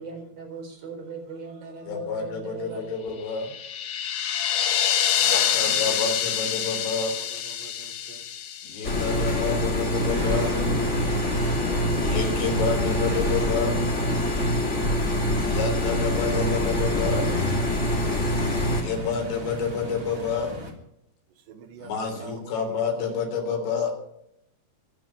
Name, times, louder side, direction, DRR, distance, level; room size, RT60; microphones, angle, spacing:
voice 1, 0.0-2.9, right 4 dB, 55° right, 3 dB, 5.8 m, -39 dB
voice 2, 1.9-3.5 5.5-7.1 8.6-10.5 12.0-13.8 15.4-17.3 18.8-20.5 21.8-23.9, left 5 dB, 80° left, 3 dB, 5.8 m, -29 dB
sound 1, 3.3-9.5, left 9 dB, 65° left, 2.2 m, -26 dB
voice 3, 5.2-8.2 10.2-12.8 13.2-13.4 15.8-19.2 21.5-21.9 22.2-23.3 23.6-23.7, right 5 dB, 75° right, 9 dB, 3.7 m, -46 dB
sound 2, 8.8-18.8, left 1 dB, 25° left, 1.9 m, -25 dB
sound 3, 9.9-20.7, equal, 20° right, 2.9 m, -35 dB
25.5 x 9.4 x 5.9 m, 0.76 s
omnidirectional pair, 5.1 m